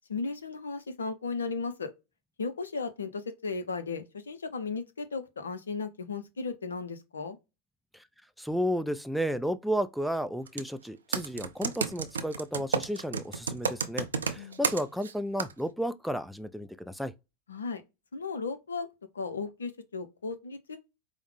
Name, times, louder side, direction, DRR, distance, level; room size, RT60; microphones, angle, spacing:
voice 1, 0.1-1.9 2.4-7.4 14.4-14.6 17.5-17.8 18.1-18.9 19.1-20.8, left 4 dB, 75° left, 0.6 m, -35 dB
voice 2, 8.4-17.1, equal, ahead, 0.4 m, -32 dB
Computer keyboard, 10.5-10.7 11.1-15.1 15.4-15.5, right 6 dB, 75° right, 0.4 m, -30 dB
4.7 x 2.1 x 3.2 m
figure-of-eight pair, 90°, 0 cm